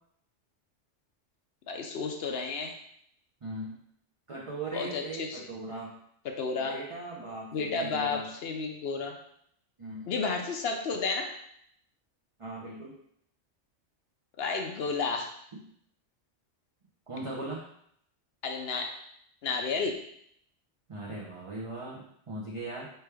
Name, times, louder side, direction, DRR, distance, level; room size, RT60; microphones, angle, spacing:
voice 1, 1.7-2.7 4.7-5.4 6.2-6.8 7.5-9.2 10.1-11.3 14.4-15.3 18.4-18.9 19.4-19.9, left 4 dB, 65° left, 3 dB, 0.7 m, -32 dB
voice 2, 3.4-3.8 4.3-6.0 6.5-8.3 9.8-10.1 12.4-13.0 15.5-15.6 17.1-17.6 20.9-22.9, right 2 dB, 35° right, -5 dB, 0.6 m, -39 dB
4.6 x 3.3 x 3.3 m, 0.70 s
omnidirectional pair, 1.3 m